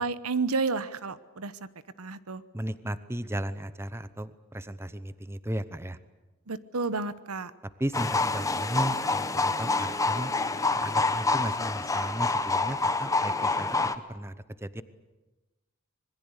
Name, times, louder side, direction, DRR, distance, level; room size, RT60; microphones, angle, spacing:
voice 1, 0.0-1.5 2.0-2.4 6.5-7.5, right 4 dB, 85° right, 14 dB, 1.1 m, -31 dB
voice 2, 2.5-6.0 7.8-10.3 10.8-13.7 14.1-14.8, right 1 dB, 10° right, 13 dB, 0.8 m, -35 dB
sound 1, 7.9-14.0, left 3 dB, 15° left, 1.0 m, -27 dB
26.0 x 21.5 x 8.2 m, 1.1 s
head